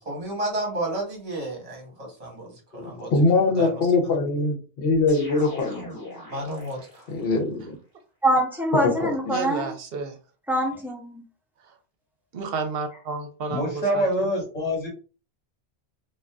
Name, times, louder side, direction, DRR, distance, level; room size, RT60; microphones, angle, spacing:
voice 1, 0.0-3.1 3.6-3.8 6.3-7.0, right 1 dB, 35° right, 0 dB, 1.1 m, -32 dB
voice 2, 2.7-5.9 7.1-7.8 8.8-9.3, left 3 dB, 65° left, 4 dB, 0.9 m, -23 dB
sound 1, 5.1-7.3, left 1 dB, 20° left, 1.1 m, -40 dB
voice 3, 8.2-9.7 10.5-11.2, equal, ahead, 0 dB, 0.7 m, -24 dB
voice 4, 9.3-10.2 11.6-11.7 12.3-14.3, right 4 dB, 65° right, 7 dB, 0.8 m, -31 dB
voice 5, 13.5-14.9, equal, 35° left, -1 dB, 1.3 m, -25 dB
2.5 x 2.3 x 3.4 m, 0.36 s
omnidirectional pair, 1.1 m